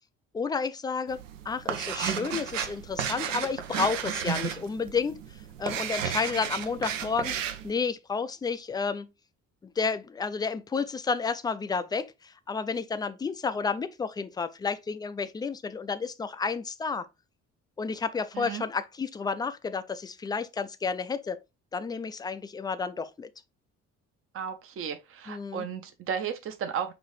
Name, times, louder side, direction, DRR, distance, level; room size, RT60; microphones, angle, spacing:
voice 1, 0.3-1.2 1.5-5.2 5.6-7.3 7.6-9.1 9.8-17.1 17.8-21.4 21.7-23.3 25.3-25.7, left 5 dB, 10° left, 0.3 m, -31 dB
sound 1, 1.1-7.7, right 8 dB, 80° right, 0.5 m, -33 dB
voice 2, 24.3-26.9, right 7 dB, 35° right, 0.6 m, -34 dB
5.9 x 2.6 x 3.1 m
figure-of-eight pair, 45°, 38 cm